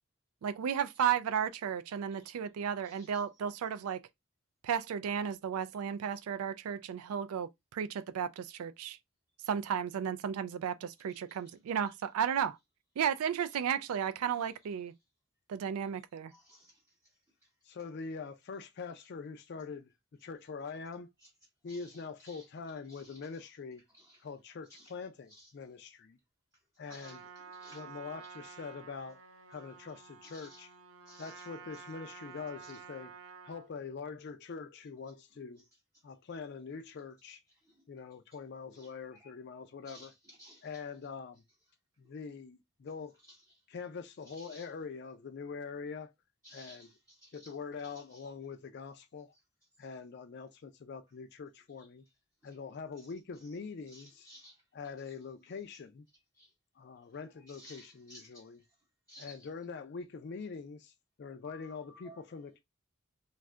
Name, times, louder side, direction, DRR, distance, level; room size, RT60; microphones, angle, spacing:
voice 1, 0.4-4.0 4.6-9.0 9.5-12.6 13.0-14.9 15.5-16.3, right 8 dB, 85° right, 0.3 m, -34 dB
voice 2, 2.8-3.2 11.1-11.4 16.3-16.8 21.7-22.4 22.9-23.2 24.0-24.2 24.7-24.9 25.3-25.5 26.9-27.2 27.6-27.8 30.2-30.6 31.1-31.4 32.6-32.7 38.7-38.9 39.2-39.3 39.9-40.7 44.3-44.7 46.4-47.5 47.8-48.2 53.9-54.6 56.4-56.5 57.5-58.4 59.1-59.5 61.4-62.2, equal, 15° right, 0.6 m, -56 dB
voice 3, 17.6-19.9 20.2-21.1 21.6-23.8 24.2-26.2 26.8-27.3 27.7-29.2 29.5-30.7 31.2-33.2 33.5-35.6 36.0-37.4 37.9-40.1 40.6-41.4 42.0-43.2 43.7-46.1 46.5-46.9 47.3-49.3 49.8-52.0 52.4-54.3 54.7-56.1 56.8-58.6 59.2-60.9 61.2-62.6, left 5 dB, 50° left, 0.4 m, -44 dB
Trumpet, 26.8-33.7, right 6 dB, 65° right, 0.7 m, -51 dB
2.6 x 2.4 x 3.1 m
head